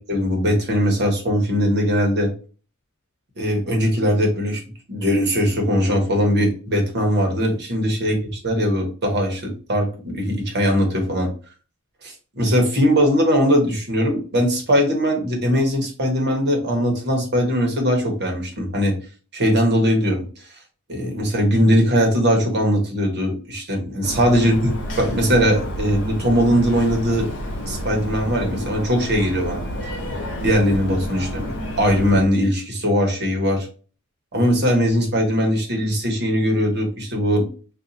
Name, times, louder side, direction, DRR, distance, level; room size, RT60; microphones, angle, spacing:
voice 1, 0.1-2.3 3.4-4.6 4.9-11.3 12.0-19.0 19.3-20.3 20.9-24.7 25.0-27.3 27.6-29.6 30.4-33.7 34.3-37.5, equal, 50° right, 2 dB, 1.1 m, -20 dB
sound 1, 24.0-32.2, equal, 60° left, 0.9 m, -30 dB
2.6 x 2.5 x 3.9 m, 0.37 s
head